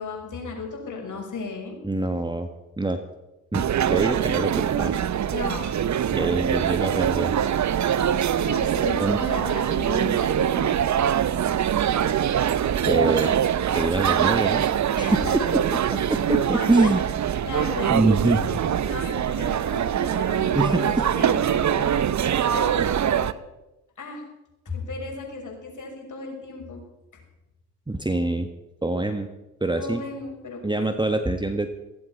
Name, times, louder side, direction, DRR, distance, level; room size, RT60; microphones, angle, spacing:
voice 1, 0.0-1.8 5.3-6.2 8.4-10.9 15.0-16.0 16.5-16.9 17.4-22.0 22.5-23.4 24.0-24.2 24.6-26.8 27.1-27.2 29.8-31.0, left 3 dB, 45° left, 1 dB, 6.3 m, -35 dB
voice 2, 1.8-2.5 2.8-3.0 3.5-4.9 6.1-7.3 9.0-9.2 12.9-13.4 13.7-14.6 15.1-15.6 15.9-17.0 17.9-18.4 20.5-21.0 27.9-28.5 28.8-29.3 29.6-30.0 30.6-31.7, right 2 dB, 10° right, 7 dB, 1.5 m, -24 dB
sound 1, 3.5-23.3, right 9 dB, 40° right, 0.9 m, -23 dB
16.0 x 16.0 x 5.7 m, 0.97 s
hypercardioid pair, 50°, 44 cm